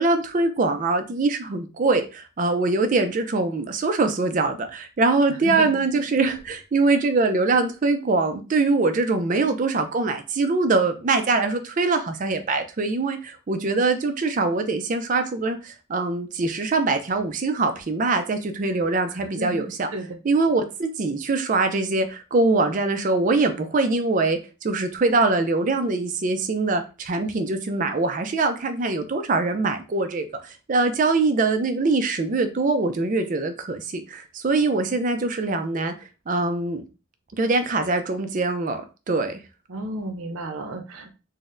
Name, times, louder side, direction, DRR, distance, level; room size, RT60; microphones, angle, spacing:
voice 1, 0.0-19.9 20.2-36.8 37.3-39.4, right 3 dB, 40° right, 7 dB, 0.4 m, -23 dB
voice 2, 5.3-5.8 19.1-20.2 39.7-41.1, right 1 dB, 85° right, 5 dB, 0.6 m, -33 dB
3.9 x 2.1 x 2.5 m, 0.31 s
head